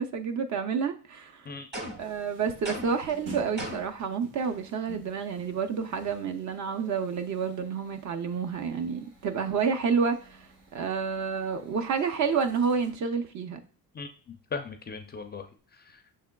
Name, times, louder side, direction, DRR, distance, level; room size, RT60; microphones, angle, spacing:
voice 1, 0.0-1.4 2.0-10.4 10.7-13.6, right 6 dB, 50° right, 7 dB, 0.6 m, -29 dB
sound 1, 1.7-2.2 2.6-3.1 3.6-4.0, right 1 dB, 25° right, 1.2 m, -37 dB
sound 2, 2.0-12.9, right 2 dB, 90° right, 1.4 m, -50 dB
voice 2, 13.9-15.5 15.7-16.0, left 4 dB, 25° left, 6 dB, 0.4 m, -38 dB
6.3 x 3.5 x 2.2 m, 0.41 s
cardioid pair, 125°, 38 cm